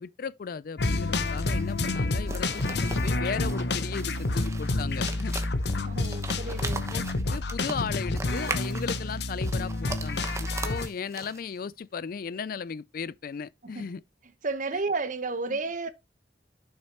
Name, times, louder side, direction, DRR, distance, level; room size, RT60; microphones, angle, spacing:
voice 1, 0.0-5.3 6.9-14.0 14.7-14.8 15.5-15.6, left 6 dB, 55° left, 0.4 m, -36 dB
sound 1, 0.8-10.9, left 2 dB, 70° left, 0.8 m, -29 dB
sound 2, 1.1-11.6, right 3 dB, 15° right, 1.0 m, -40 dB
voice 2, 5.8-6.9 13.6-13.9 14.4-15.9, right 3 dB, 45° right, 1.0 m, -32 dB
11.5 x 6.4 x 2.9 m
head